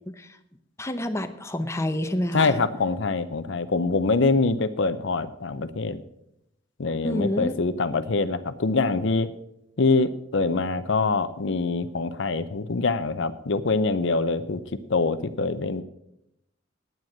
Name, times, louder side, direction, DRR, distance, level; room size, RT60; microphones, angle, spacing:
voice 1, 0.1-0.4 0.8-2.6 7.0-7.5, left 1 dB, 15° left, 7 dB, 0.7 m, -28 dB
voice 2, 2.3-6.0 6.8-9.3 9.8-14.6 14.9-15.8, left 3 dB, 65° left, 12 dB, 0.6 m, -24 dB
9.1 x 9.1 x 7.3 m, 0.81 s
head